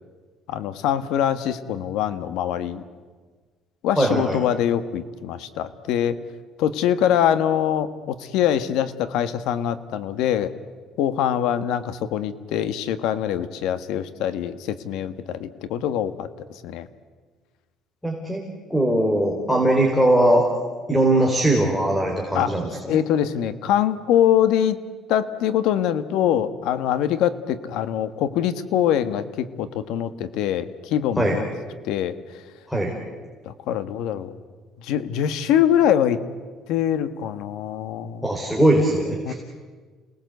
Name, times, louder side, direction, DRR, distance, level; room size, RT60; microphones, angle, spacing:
voice 1, 0.5-2.8 3.8-6.2 6.6-10.5 11.0-16.3 16.6-16.9 22.3-22.5 22.9-24.8 25.1-31.4 31.8-32.4 33.4-34.4 34.8-36.2 36.7-38.3 39.2-39.3, left 10 dB, 80° left, 12 dB, 1.6 m, -23 dB
voice 2, 4.0-4.4 18.0-18.4 18.7-20.5 20.9-22.7 31.2-31.4 32.7-32.9 38.2-39.3, right 1 dB, 5° left, 1 dB, 3.9 m, -20 dB
29.5 x 19.5 x 8.1 m, 1.5 s
cardioid pair, 140°, 0 cm